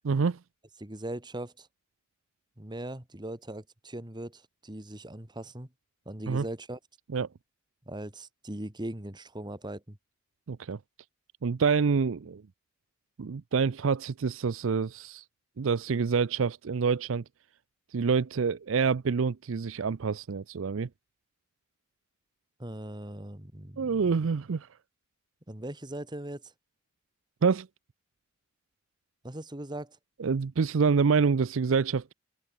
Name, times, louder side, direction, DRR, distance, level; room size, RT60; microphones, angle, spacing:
voice 1, 0.1-0.4 6.3-6.4 7.1-7.3 10.5-10.8 11.4-12.4 13.2-15.2 15.6-17.2 17.9-20.9 23.8-24.7 27.4-27.7 30.2-32.1, right 5 dB, 70° right, 0.5 m, -27 dB
voice 2, 0.8-1.7 2.6-5.7 6.1-6.8 7.9-10.0 22.6-24.1 25.5-26.5 29.2-30.0, right 1 dB, 20° right, 2.0 m, -39 dB
open air
head